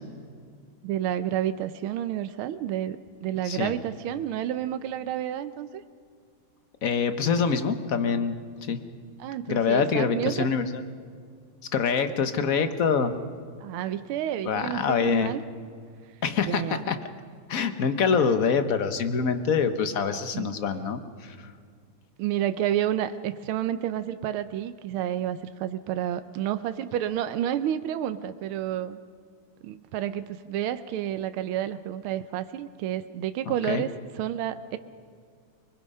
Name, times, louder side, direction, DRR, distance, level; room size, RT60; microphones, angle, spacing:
voice 1, 0.8-5.8 9.2-10.5 13.6-15.4 16.5-16.8 20.1-20.5 22.2-29.0 29.6-34.8, right 11 dB, 85° right, 10 dB, 1.6 m, -30 dB
voice 2, 6.8-8.3 8.7-8.8 9.5-10.8 11.7-13.1 14.5-15.3 16.2-17.0 17.5-21.3 33.7-33.8, left 6 dB, 50° left, 9 dB, 1.3 m, -25 dB
30.0 x 20.5 x 5.5 m, 2.2 s
omnidirectional pair, 2.3 m